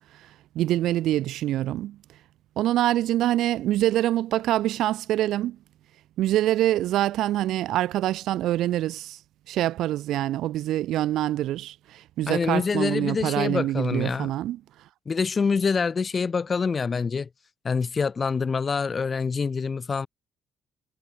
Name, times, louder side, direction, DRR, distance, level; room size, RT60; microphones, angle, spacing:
voice 1, 0.5-2.0 2.6-5.6 6.2-9.2 9.5-14.6, right 14 dB, 75° right, 0.6 m, -25 dB
voice 2, 12.3-14.3 15.1-17.3 17.6-20.1, left 5 dB, 40° left, 0.4 m, -26 dB
supercardioid pair, 70°, 0 cm